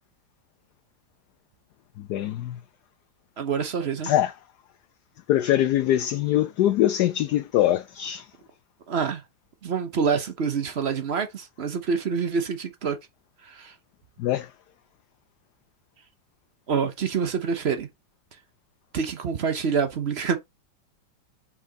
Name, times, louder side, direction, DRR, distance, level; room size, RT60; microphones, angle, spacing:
voice 1, 2.0-2.6 4.0-4.3 5.3-8.3 14.2-14.5, left 12 dB, 70° left, 1.0 m, -23 dB
voice 2, 3.4-4.1 8.9-9.2 9.6-13.0 13.4-13.7 16.7-17.9 18.9-20.4, right 6 dB, 45° right, 0.9 m, -26 dB
5.8 x 4.8 x 3.8 m
omnidirectional pair, 2.0 m